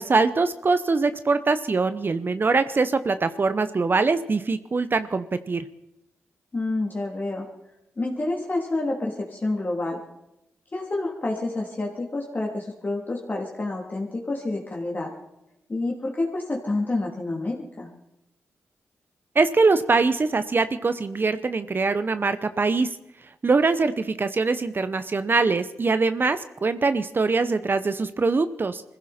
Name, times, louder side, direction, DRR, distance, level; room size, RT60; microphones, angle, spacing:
voice 1, 0.0-5.6 19.3-22.9 23.4-28.8, right 4 dB, 45° right, 12 dB, 0.8 m, -23 dB
voice 2, 6.5-7.5 8.0-10.0 10.7-15.1 15.7-17.9, left 2 dB, 35° left, -2 dB, 3.0 m, -28 dB
21.5 x 15.5 x 4.3 m, 0.86 s
cardioid pair, 55°, 5 cm